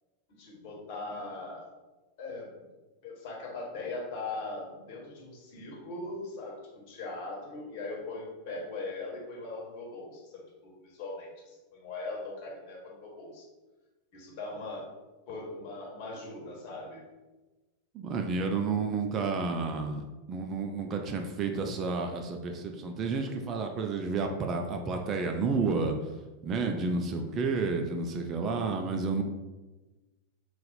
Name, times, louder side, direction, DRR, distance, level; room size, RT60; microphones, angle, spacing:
voice 1, 0.4-1.7 2.2-2.5 3.0-13.4 14.1-14.8 15.3-17.1, left 3 dB, 45° left, -2 dB, 1.4 m, -40 dB
voice 2, 17.9-25.9 26.4-29.2, right 4 dB, 30° right, 3 dB, 0.4 m, -31 dB
4.0 x 2.6 x 4.1 m, 1.2 s
figure-of-eight pair, 90°, 0 cm